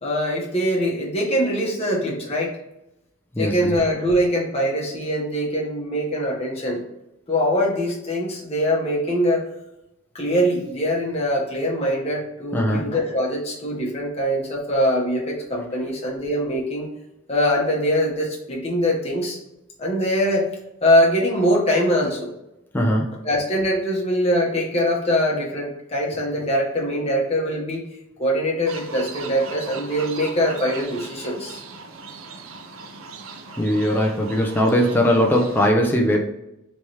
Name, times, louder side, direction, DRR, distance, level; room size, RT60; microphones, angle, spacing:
voice 1, 0.0-2.5 3.4-6.8 7.3-9.4 10.1-16.9 17.3-19.4 19.8-20.5 20.8-22.3 23.2-27.8 28.2-31.6, equal, 30° left, -3 dB, 1.0 m, -22 dB
voice 2, 3.3-3.8 12.5-12.9 22.7-23.2 33.6-36.3, equal, 10° left, 0 dB, 0.3 m, -20 dB
sound 1, 28.7-35.7, right 4 dB, 85° right, 0.5 m, -39 dB
3.4 x 3.1 x 2.8 m, 0.89 s
head